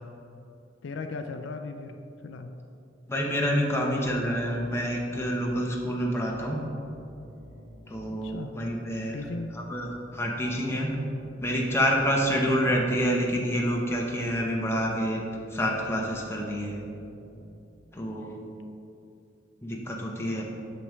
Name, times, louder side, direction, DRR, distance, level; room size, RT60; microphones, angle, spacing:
voice 1, 0.8-2.5 8.1-8.5 9.1-9.6, left 3 dB, 75° left, 7 dB, 0.4 m, -37 dB
voice 2, 3.1-6.6 7.9-9.2 9.5-11.1 11.4-15.2 15.5-16.8 17.9-18.5 19.6-20.4, equal, 15° left, -1 dB, 0.9 m, -28 dB
sound 1, 4.0-17.6, right 1 dB, 75° right, 1.5 m, -50 dB
8.5 x 6.6 x 3.2 m, 2.6 s
head